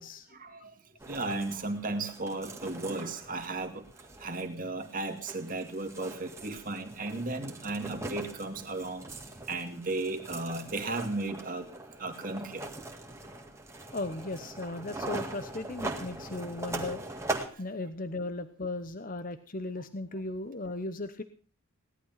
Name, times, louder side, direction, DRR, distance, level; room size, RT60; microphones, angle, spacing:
voice 1, 0.3-11.7 12.0-12.7 17.4-17.7 18.2-18.3, right 2 dB, 40° right, 6 dB, 2.1 m, -35 dB
sound 1, 1.0-17.5, right 2 dB, 15° right, 1.9 m, -41 dB
voice 2, 13.9-17.0 17.6-21.2, left 2 dB, 40° left, 10 dB, 0.9 m, -36 dB
17.5 x 11.5 x 5.8 m, 0.38 s
head